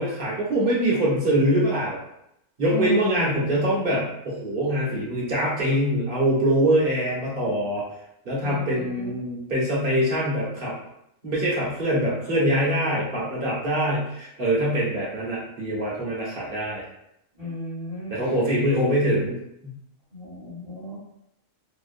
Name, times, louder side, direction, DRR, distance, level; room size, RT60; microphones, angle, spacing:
voice 1, 0.0-2.0 2.6-7.9 8.2-10.7 11.2-16.8 18.1-19.4, right 1 dB, 50° right, -6 dB, 0.9 m, -24 dB
voice 2, 2.7-3.6 8.4-9.1 17.3-18.1 20.1-21.0, equal, 20° left, -10 dB, 1.1 m, -33 dB
2.8 x 2.1 x 2.4 m, 0.79 s
omnidirectional pair, 1.4 m